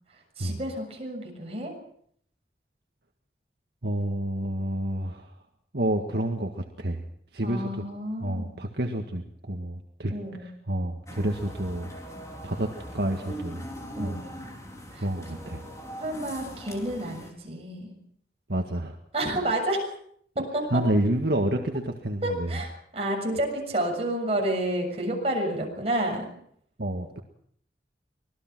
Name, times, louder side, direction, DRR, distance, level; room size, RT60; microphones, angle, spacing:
voice 1, 0.4-1.7 7.4-8.5 10.1-10.5 14.0-14.3 14.9-15.1 16.0-18.0 19.1-19.9 20.4-20.7 22.2-26.3, right 1 dB, 35° right, 1 dB, 7.0 m, -30 dB
voice 2, 3.8-5.3 5.7-7.0 7.3-7.7 8.2-10.1 10.4-11.9 12.4-12.7 12.9-13.7 14.0-14.2 15.0-15.6 18.5-19.0 20.7-22.5 26.8-27.2, right 1 dB, 70° right, 3 dB, 1.8 m, -29 dB
sound 1, 11.1-17.3, equal, 20° left, 4.1 m, -41 dB
25.5 x 19.0 x 6.1 m, 0.66 s
head